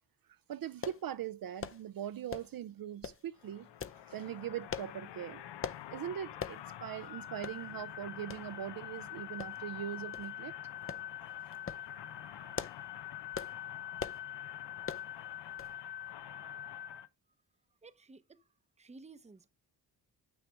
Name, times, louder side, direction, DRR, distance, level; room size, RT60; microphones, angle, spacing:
voice 1, 0.5-3.7 4.1-5.4 5.9-10.5, right 10 dB, 55° right, 0.5 m, -41 dB
sound 1, 0.8-1.0 1.6-1.8 2.3-2.6 3.0-3.2 3.8-4.0 4.7-4.9 5.6-5.8 6.4-6.6 7.0-7.1 7.4-7.6 8.3-8.4 9.4-9.8 10.1-10.3 10.9-11.1 11.5-11.8 12.3-12.9 13.3-13.6 14.0-14.2 14.8-15.1 15.6-15.8 16.1-16.2, left 6 dB, 30° left, 0.6 m, -41 dB
sound 2, 3.4-17.1, left 11 dB, 80° left, 0.7 m, -45 dB
voice 2, 17.8-18.5 18.8-19.5, right 3 dB, 15° right, 0.7 m, -55 dB
8.0 x 6.3 x 3.3 m
cardioid pair, 85°, 41 cm